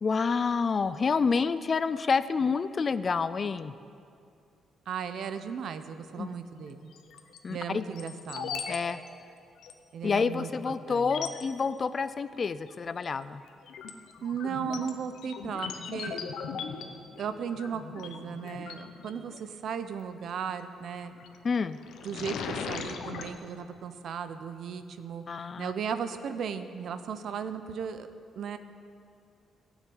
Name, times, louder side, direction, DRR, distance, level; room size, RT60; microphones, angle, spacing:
voice 1, 0.0-3.7 6.2-6.3 7.4-7.8 8.7-9.0 10.0-13.4 21.4-21.8 25.3-25.7, left 5 dB, 30° left, 14 dB, 0.3 m, -28 dB
voice 2, 4.9-6.9 7.5-8.6 9.9-11.2 14.2-16.2 17.2-21.1 22.0-25.2 25.6-28.1 28.4-28.6, right 7 dB, 55° right, 10 dB, 0.7 m, -36 dB
sound 1, 6.9-7.4 7.9-8.8 9.0-9.1 9.6-9.7 10.4-10.5 11.0-11.4 12.7-13.0 13.5-19.4 21.0-21.4 21.7-23.3, left 6 dB, 85° left, 1.0 m, -39 dB
16.0 x 7.3 x 8.6 m, 2.4 s
cardioid pair, 170°, 0 cm